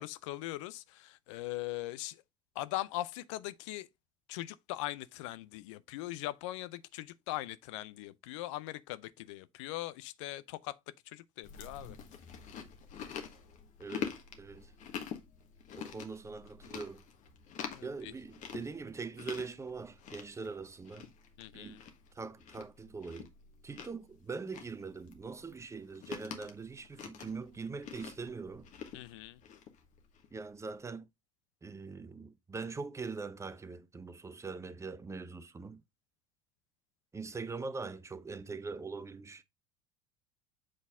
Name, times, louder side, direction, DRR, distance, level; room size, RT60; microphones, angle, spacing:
voice 1, 0.0-2.2 2.6-3.9 4.3-10.8 11.1-12.0 17.7-18.1 21.4-21.8 28.9-29.4, left 16 dB, 65° left, 0.5 m, -40 dB
Chewing mastication, 11.4-30.4, left 8 dB, 50° left, 1.4 m, -46 dB
voice 2, 13.8-14.7 15.8-17.0 17.8-21.1 21.5-21.8 22.2-23.3 23.6-28.7 30.3-31.1 31.6-35.8 37.1-39.4, right 4 dB, 15° right, 0.7 m, -42 dB
7.5 x 4.0 x 3.5 m
figure-of-eight pair, 70°, 17 cm